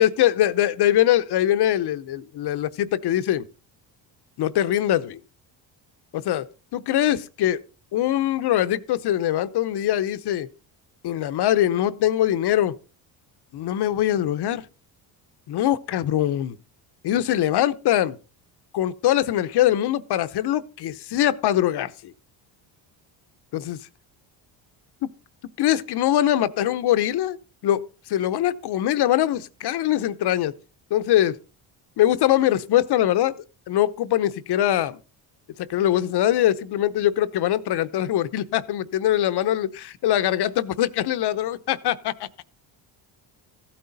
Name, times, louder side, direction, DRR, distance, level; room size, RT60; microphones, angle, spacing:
voice 1, 0.0-3.5 4.4-5.2 6.1-6.5 6.7-7.6 7.9-10.5 11.0-12.7 13.5-14.6 15.5-16.6 17.0-18.2 18.7-22.1 23.5-23.8 25.6-27.4 27.6-30.5 30.9-31.4 32.0-35.0 35.6-42.3, left 12 dB, 60° left, 0.9 m, -22 dB
15.0 x 8.7 x 4.0 m
cardioid pair, 95°, 45 cm